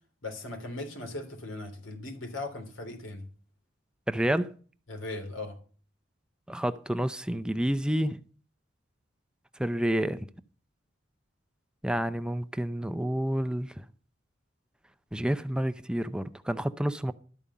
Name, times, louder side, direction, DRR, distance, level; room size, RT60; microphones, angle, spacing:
voice 1, 0.2-3.3 4.9-5.5, left 2 dB, 85° left, 3.4 m, -38 dB
voice 2, 4.1-4.5 6.5-8.2 9.6-10.2 11.8-13.7 15.1-17.1, right 1 dB, 5° right, 0.5 m, -29 dB
12.5 x 5.3 x 8.4 m
head